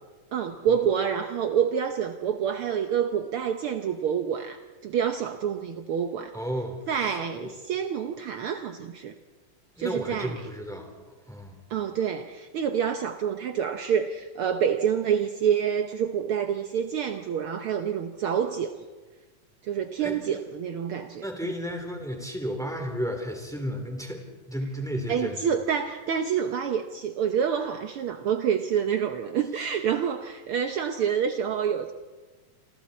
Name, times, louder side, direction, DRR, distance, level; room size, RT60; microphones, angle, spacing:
voice 1, 0.3-6.3 6.9-9.1 9.8-10.4 11.7-18.8 19.6-21.5 25.1-31.9, right 8 dB, 75° right, 6 dB, 1.2 m, -27 dB
voice 2, 6.3-7.5 9.8-10.9 11.3-11.5 20.0-20.2 21.2-24.2 24.5-25.4, equal, ahead, 3 dB, 3.1 m, -33 dB
28.0 x 26.5 x 4.3 m, 1.3 s
omnidirectional pair, 3.7 m